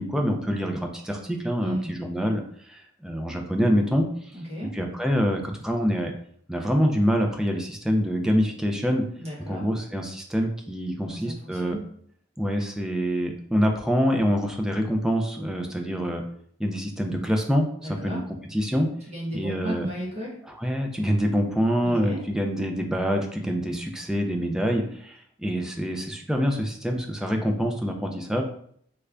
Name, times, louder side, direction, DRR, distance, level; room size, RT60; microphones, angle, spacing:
voice 1, 0.0-2.4 2.7-4.1 4.7-6.1 6.5-9.0 9.5-11.8 12.4-16.2 16.6-18.2 18.5-18.9 19.3-19.9 20.5-28.4, equal, 5° right, 2 dB, 0.4 m, -25 dB
voice 2, 1.6-1.9 4.3-4.7 9.2-9.7 11.0-11.8 17.8-18.2 19.1-20.4 21.8-22.2, equal, 35° right, -5 dB, 1.2 m, -34 dB
3.3 x 2.5 x 3.3 m, 0.64 s
head